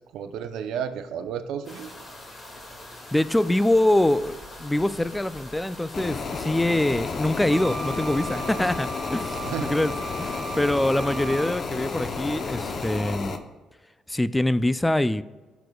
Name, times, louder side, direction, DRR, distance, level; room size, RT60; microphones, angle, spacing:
voice 1, 0.1-1.9 9.4-9.8, right 8 dB, 85° right, 7 dB, 0.7 m, -32 dB
sound 1, 1.6-13.0, left 1 dB, 30° left, 2.1 m, -43 dB
voice 2, 3.1-9.4 9.7-9.9 10.2-13.4 14.1-15.2, left 1 dB, 10° left, 15 dB, 0.3 m, -24 dB
sound 2, 5.9-13.4, left 4 dB, 45° left, 0.7 m, -32 dB
Wind instrument woodwind instrument, 7.5-11.6, right 3 dB, 35° right, 1.9 m, -36 dB
14.5 x 6.1 x 2.3 m, 1.3 s
cardioid pair, 95°, 0 cm